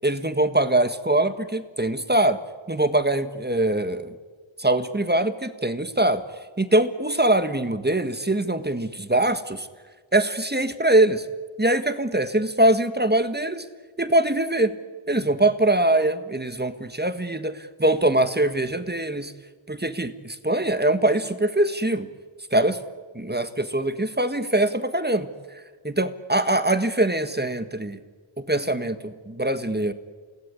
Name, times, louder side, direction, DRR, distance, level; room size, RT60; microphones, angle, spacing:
voice 1, 0.0-2.4 2.7-4.2 4.6-6.2 6.6-9.7 10.1-11.2 11.6-13.6 14.0-14.8 15.1-19.3 19.7-22.1 22.5-22.8 23.1-25.3 25.8-28.0 28.4-29.9, right 1 dB, 20° right, 10 dB, 1.6 m, -23 dB
28.5 x 18.5 x 9.7 m, 1.4 s
wide cardioid pair, 55°, 49 cm